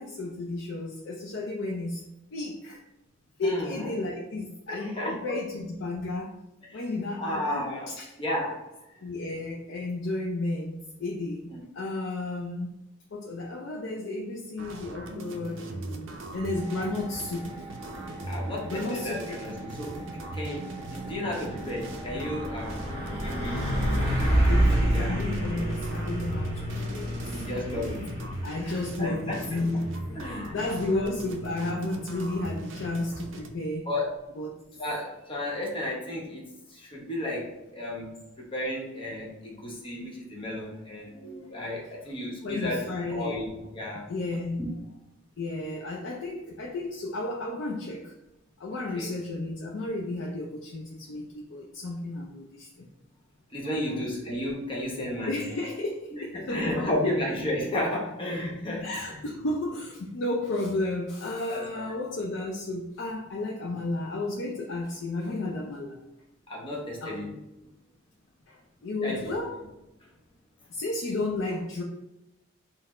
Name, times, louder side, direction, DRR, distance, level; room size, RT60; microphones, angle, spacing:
voice 1, 0.0-2.8 3.4-6.4 6.7-8.2 9.0-12.8 13.1-17.6 18.6-19.4 20.8-20.9 24.5-28.1 28.4-33.9 34.4-34.6 42.4-43.4 44.1-44.8 45.4-48.1 48.6-52.9 53.6-54.2 55.3-57.2 58.8-66.0 67.0-67.2 68.5-69.6 70.7-71.8, left 2 dB, 65° left, -1 dB, 0.4 m, -33 dB
voice 2, 3.4-3.9 4.7-5.4 6.7-6.8 7.2-7.9 8.2-8.6 11.5-11.6 18.3-22.8 23.2-24.1 24.7-25.2 27.3-28.1 28.6-29.4 30.2-30.5 33.9-34.1 34.8-36.4 36.7-38.2 38.5-44.0 44.6-44.7 48.9-49.1 53.5-55.3 56.1-58.9 61.5-61.6 66.5-67.4 69.0-69.3, left 1 dB, 25° left, -2 dB, 0.9 m, -33 dB
sound 1, 14.6-33.5, right 2 dB, 65° right, 0.5 m, -40 dB
sound 2, 16.5-25.0, right 1 dB, 5° right, 1.4 m, -44 dB
Truck, 20.2-20.4 20.8-33.4, right 1 dB, 30° right, 1.2 m, -30 dB
4.1 x 2.0 x 4.1 m, 0.93 s
head